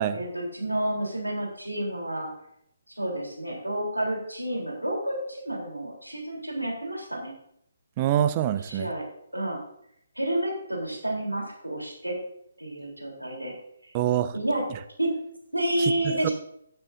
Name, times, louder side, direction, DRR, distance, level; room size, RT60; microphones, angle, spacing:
voice 1, 0.1-2.3 2.9-7.3 8.6-9.0 9.3-9.6 10.1-12.2 12.6-13.5 13.8-13.9 14.3-14.6 15.0-15.1 15.5-16.3, right 1 dB, 90° right, -1 dB, 3.4 m, -30 dB
voice 2, 8.0-8.9 13.9-14.3 15.8-15.9 16.2-16.3, right 11 dB, 25° right, 11 dB, 0.6 m, -25 dB
17.0 x 6.9 x 2.6 m, 0.74 s
figure-of-eight pair, 140°, 0 cm